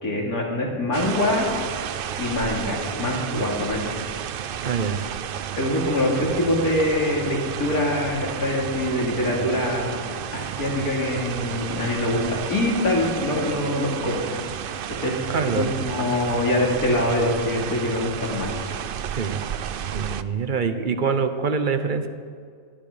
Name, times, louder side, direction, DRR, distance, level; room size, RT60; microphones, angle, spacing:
voice 1, 0.0-1.5 2.2-4.0 5.6-9.9 10.3-14.4 15.0-18.5, left 1 dB, 90° left, -2 dB, 3.4 m, -24 dB
sound 1, 0.9-20.2, right 9 dB, 70° right, 0.5 m, -32 dB
voice 2, 4.6-5.0 15.3-15.8 19.1-19.4 19.9-22.1, right 5 dB, 40° right, 8 dB, 1.0 m, -25 dB
20.0 x 12.5 x 5.1 m, 2.1 s
omnidirectional pair, 1.5 m